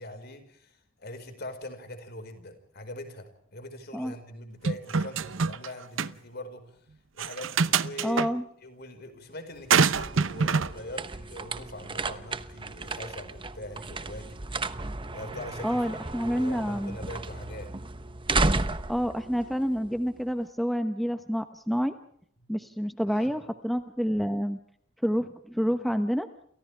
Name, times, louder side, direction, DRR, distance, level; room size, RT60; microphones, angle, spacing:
voice 1, 0.0-6.8 7.1-8.3 8.6-14.7 15.1-15.8 16.2-17.7 22.4-22.5 23.1-23.4, left 1 dB, 55° left, 7 dB, 5.1 m, -42 dB
sound 1, 4.6-5.7 6.0-6.1 7.2-8.3 9.7-10.7, right 5 dB, 80° right, 0.8 m, -25 dB
voice 2, 8.0-8.4 15.6-17.0 18.9-21.9 22.5-24.6 25.0-26.3, equal, ahead, 7 dB, 1.1 m, -28 dB
sound 2, 9.6-20.3, right 3 dB, 25° right, 1.0 m, -34 dB
29.0 x 29.0 x 3.5 m, 0.63 s
head